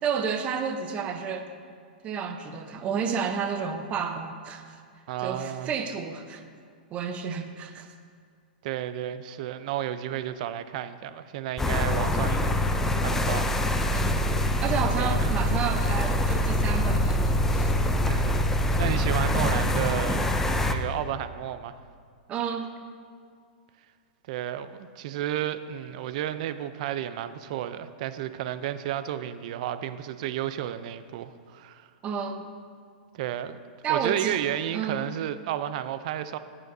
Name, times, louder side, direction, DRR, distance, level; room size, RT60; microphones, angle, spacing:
voice 1, 0.0-1.5 2.0-4.8 5.2-6.4 6.9-7.9 13.9-14.3 14.6-17.7 22.3-22.7 32.0-32.5 33.8-34.4 34.7-35.1, right 6 dB, 25° right, 7 dB, 0.8 m, -31 dB
voice 2, 5.1-5.7 8.6-13.6 15.0-15.3 18.1-18.4 18.8-21.8 24.3-31.9 33.1-33.6 33.9-36.4, right 11 dB, 50° right, 12 dB, 0.5 m, -32 dB
sound 1, 11.6-20.7, left 1 dB, 10° left, 0.5 m, -24 dB
16.5 x 9.2 x 2.7 m, 2.1 s
hypercardioid pair, 145°, 5 cm